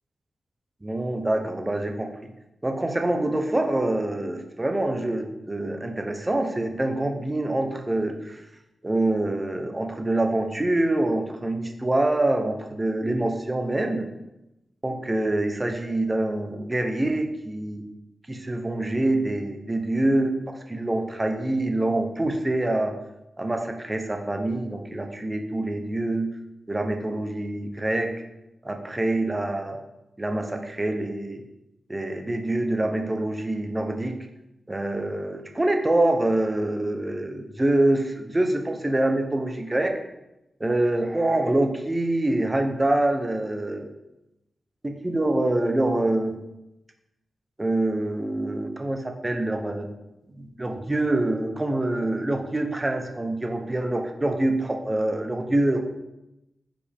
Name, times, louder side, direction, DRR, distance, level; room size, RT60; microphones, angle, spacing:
voice 1, 0.8-2.1 2.6-8.4 8.8-14.1 14.8-17.8 18.3-22.9 23.4-26.3 26.7-28.1 28.6-29.8 30.2-31.4 31.9-34.2 34.7-40.0 40.6-43.9 44.8-46.4 47.6-49.9 50.3-55.8, right 1 dB, 15° right, 4 dB, 0.7 m, -25 dB
9.6 x 5.1 x 3.5 m, 0.91 s
wide cardioid pair, 155°, 0 cm